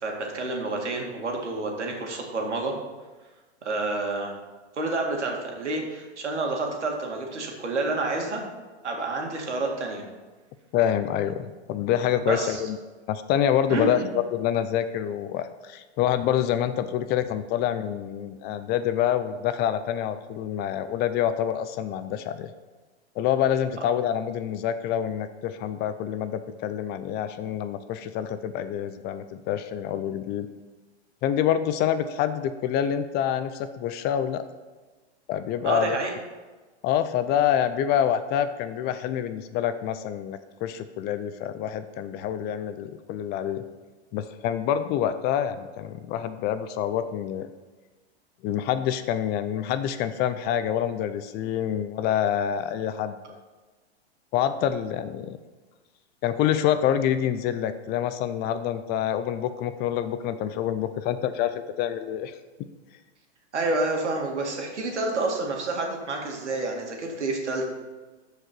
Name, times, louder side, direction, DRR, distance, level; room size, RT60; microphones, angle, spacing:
voice 1, 0.0-2.7 3.6-4.3 4.7-8.4 8.8-10.0 12.3-12.6 13.7-14.1 35.6-36.1 63.5-67.7, right 2 dB, 90° right, 1 dB, 2.2 m, -29 dB
voice 2, 10.7-12.8 13.1-22.5 23.2-30.5 31.2-34.4 35.3-36.0 36.8-43.6 44.1-47.5 48.4-53.4 54.3-55.4 56.2-62.4, left 10 dB, 30° left, 11 dB, 0.5 m, -27 dB
13.5 x 4.9 x 4.5 m, 1.3 s
hypercardioid pair, 115°, 34 cm